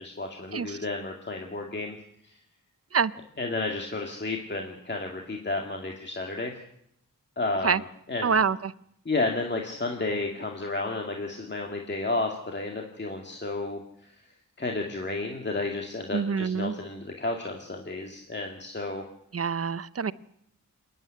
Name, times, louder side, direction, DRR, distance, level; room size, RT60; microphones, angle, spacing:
voice 1, 0.0-2.0 2.2-2.4 3.4-6.5 7.4-8.4 9.1-14.2 14.6-19.1, left 2 dB, 30° left, 1 dB, 2.1 m, -32 dB
voice 2, 8.2-8.7 16.1-16.7 19.3-20.1, right 6 dB, 45° right, 16 dB, 0.7 m, -26 dB
27.5 x 9.4 x 9.8 m, 0.73 s
wide cardioid pair, 120°, 34 cm